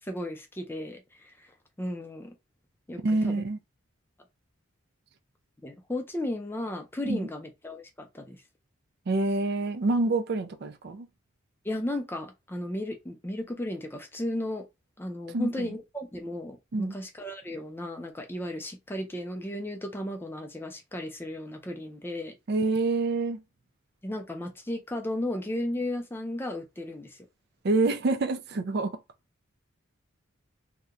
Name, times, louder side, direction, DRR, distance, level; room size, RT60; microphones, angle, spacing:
voice 1, 0.0-1.5 1.8-2.3 2.9-3.4 5.6-8.4 11.6-14.6 15.0-22.3 24.0-27.3, left 1 dB, 10° left, 0.5 m, -35 dB
voice 2, 3.0-3.6 7.1-7.3 9.1-11.1 15.3-15.7 16.7-16.9 22.5-23.4 27.6-28.9, right 3 dB, 50° right, 0.4 m, -27 dB
2.8 x 2.1 x 3.7 m
head